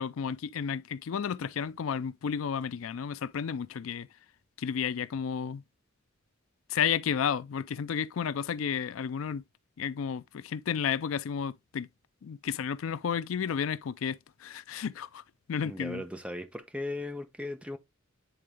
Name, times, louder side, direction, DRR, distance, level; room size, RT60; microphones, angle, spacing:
voice 1, 0.0-4.1 4.6-5.6 6.7-9.4 9.8-11.9 12.2-15.2 15.5-16.0, left 7 dB, 75° left, 0.4 m, -32 dB
voice 2, 15.6-17.8, left 1 dB, 5° right, 0.9 m, -37 dB
9.2 x 3.8 x 3.4 m
head